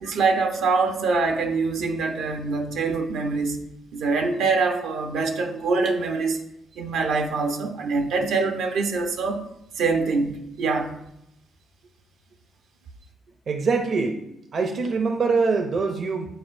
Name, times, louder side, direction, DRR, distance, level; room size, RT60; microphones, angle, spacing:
voice 1, 0.0-3.6 3.9-6.4 6.8-9.4 9.8-10.9, right 4 dB, 85° right, 4 dB, 0.8 m, -24 dB
voice 2, 13.5-14.2 14.5-16.4, right 4 dB, 55° right, 5 dB, 0.6 m, -24 dB
9.1 x 4.5 x 2.6 m, 0.81 s
cardioid pair, 90°, 0 cm